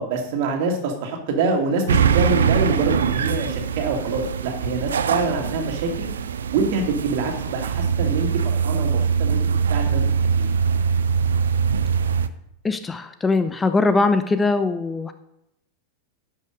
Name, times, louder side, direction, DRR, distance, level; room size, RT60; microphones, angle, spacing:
voice 1, 0.0-6.1 6.5-10.5, right 3 dB, 50° right, 2 dB, 2.4 m, -25 dB
sound 1, 1.9-12.3, right 6 dB, 65° right, 0.6 m, -22 dB
voice 2, 12.6-15.1, left 3 dB, 15° left, 10 dB, 0.7 m, -21 dB
11.5 x 6.1 x 6.5 m, 0.80 s
figure-of-eight pair, 90°, 0 cm